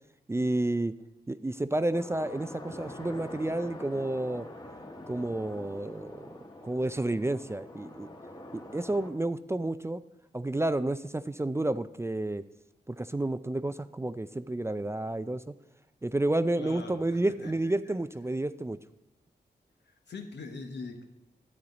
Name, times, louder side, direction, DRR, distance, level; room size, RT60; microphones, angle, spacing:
voice 1, 0.3-1.0 1.3-4.5 5.1-6.3 6.6-8.1 8.5-10.0 10.3-12.4 12.9-15.5 16.0-18.8, right 1 dB, 15° right, 12 dB, 0.4 m, -30 dB
sound 1, 1.9-9.1, left 1 dB, 25° left, 1.4 m, -45 dB
voice 2, 16.5-17.9 19.9-21.0, left 4 dB, 80° left, 5 dB, 1.1 m, -43 dB
12.0 x 8.6 x 3.9 m, 0.87 s
cardioid pair, 70°, 18 cm